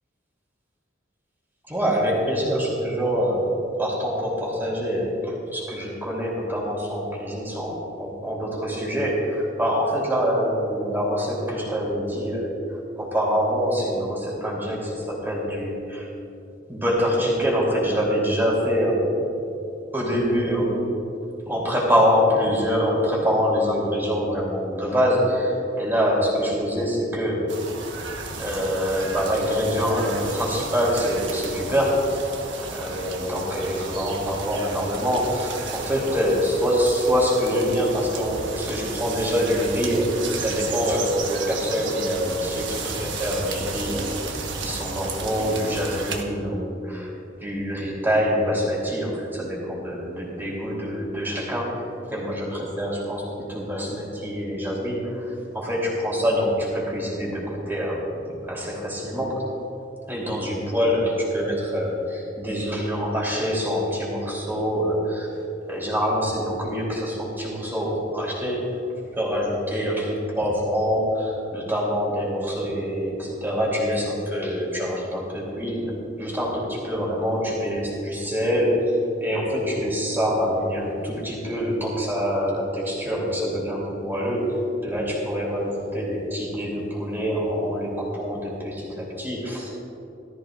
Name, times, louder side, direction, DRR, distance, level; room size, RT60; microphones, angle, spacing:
voice 1, 1.7-12.6 13.0-16.1 16.7-19.2 19.9-20.8 21.5-27.5 28.3-32.2 32.6-40.1 40.4-47.1 47.4-59.4 60.1-65.3 65.7-68.8 69.1-78.9 79.2-89.8, equal, 10° right, -4 dB, 3.2 m, -25 dB
sound 1, 27.5-46.2, right 4 dB, 70° right, 1.3 m, -33 dB
18.0 x 14.0 x 2.5 m, 2.8 s
head